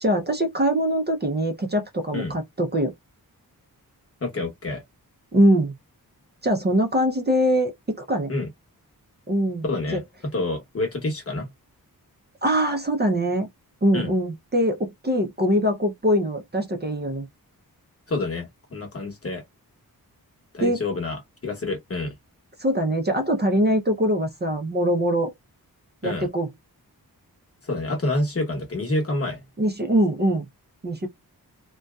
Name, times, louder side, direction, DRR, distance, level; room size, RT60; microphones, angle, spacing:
voice 1, 0.0-2.9 5.3-5.7 6.4-8.3 9.3-9.6 9.9-10.0 12.4-13.5 13.8-17.3 20.6-20.8 22.6-25.3 26.0-26.5 29.6-30.5 30.8-31.1, equal, 30° right, 0.5 m, -22 dB
voice 2, 4.2-4.8 8.3-8.5 9.6-11.5 13.9-14.1 18.1-19.4 20.5-22.1 26.0-26.3 27.6-29.4, left 2 dB, 40° left, 1.0 m, -28 dB
2.6 x 2.2 x 2.2 m
wide cardioid pair, 120°, 37 cm